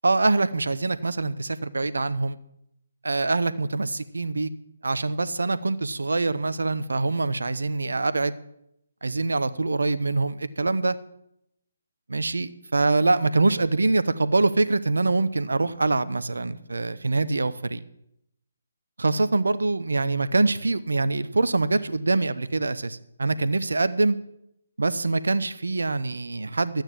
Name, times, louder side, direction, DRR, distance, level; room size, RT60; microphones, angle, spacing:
voice 1, 0.0-2.4 3.0-4.5 4.8-8.4 9.0-11.0 12.1-17.8 19.0-24.2 24.8-26.8, right 3 dB, 70° right, 15 dB, 0.7 m, -24 dB
12.0 x 9.0 x 7.4 m, 0.80 s
figure-of-eight pair, 140°, 0 cm